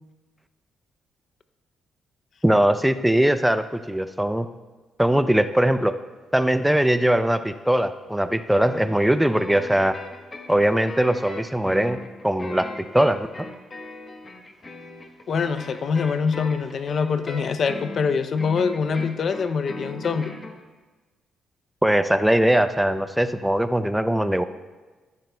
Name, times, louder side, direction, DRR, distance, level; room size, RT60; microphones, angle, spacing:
voice 1, 2.4-4.5 5.0-6.0 6.3-10.0 10.5-12.0 12.2-12.7 12.9-13.5 21.8-24.4, right 1 dB, 5° right, 10 dB, 0.4 m, -20 dB
sound 1, 8.6-20.6, left 2 dB, 30° left, 1.0 m, -38 dB
voice 2, 15.3-20.3, left 5 dB, 55° left, 10 dB, 0.5 m, -24 dB
13.5 x 12.0 x 2.2 m, 1.3 s
cardioid pair, 90°, 0 cm